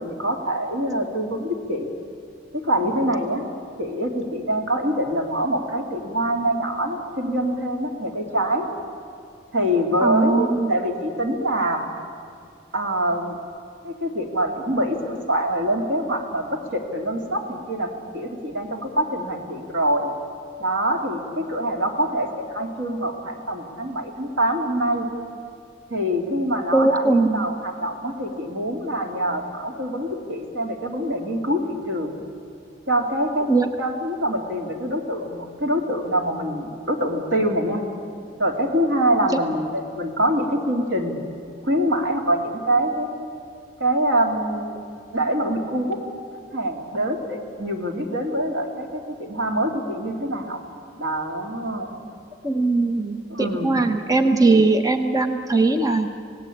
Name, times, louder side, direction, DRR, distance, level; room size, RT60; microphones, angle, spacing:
voice 1, 0.0-1.9 2.5-3.4 3.8-8.6 9.5-11.9 12.7-13.4 13.8-20.1 20.6-25.1 25.9-32.2 32.9-33.5 33.8-37.8 38.4-41.2 41.6-43.3 43.8-44.8 45.1-46.0 46.5-50.6 51.0-51.9 53.3-53.8, right 1 dB, 85° right, 3 dB, 3.1 m, -25 dB
voice 2, 10.0-10.7 26.7-27.5 33.5-33.7 52.4-56.2, right 3 dB, 20° right, 7 dB, 1.0 m, -20 dB
27.5 x 18.0 x 8.7 m, 2.4 s
head